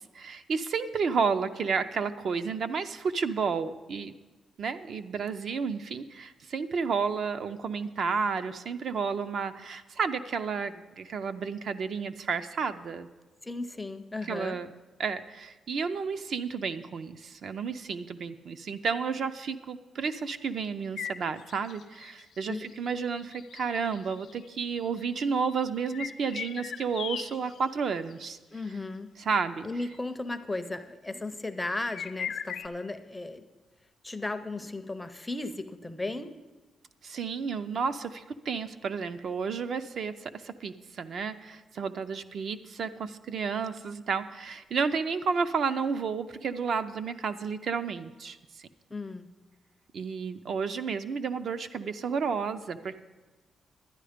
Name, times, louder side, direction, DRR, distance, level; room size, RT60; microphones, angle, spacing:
voice 1, 0.1-4.1 4.6-13.1 14.3-14.7 15.0-28.4 29.2-29.6 37.0-48.4 49.9-53.0, right 5 dB, 55° right, 10 dB, 0.4 m, -31 dB
voice 2, 13.4-14.6 22.5-22.7 28.5-29.1 29.6-33.4 34.0-36.4 48.9-49.3, left 2 dB, 10° left, 9 dB, 0.5 m, -35 dB
sound 1, 21.0-27.7 28.1-28.3 28.6-28.7 29.9-30.0 31.9-32.7, left 8 dB, 65° left, 0.4 m, -39 dB
11.5 x 9.9 x 5.0 m, 1.2 s
wide cardioid pair, 170°, 0 cm